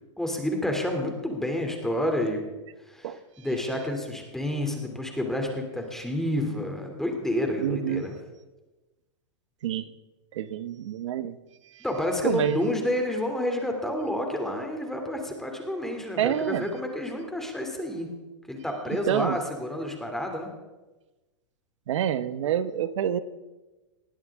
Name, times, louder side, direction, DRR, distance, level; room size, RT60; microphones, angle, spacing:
voice 1, 0.2-2.4 2.9-8.2 11.8-18.1 18.5-20.5, left 1 dB, 5° left, 2 dB, 2.9 m, -29 dB
voice 2, 7.6-8.0 9.6-9.9 10.3-11.4 11.7-11.8 12.2-12.6 16.2-16.7 19.1-19.4 21.9-23.2, right 10 dB, 75° right, 13 dB, 1.1 m, -27 dB
20.5 x 15.5 x 3.7 m, 1.1 s
hypercardioid pair, 130°, 16 cm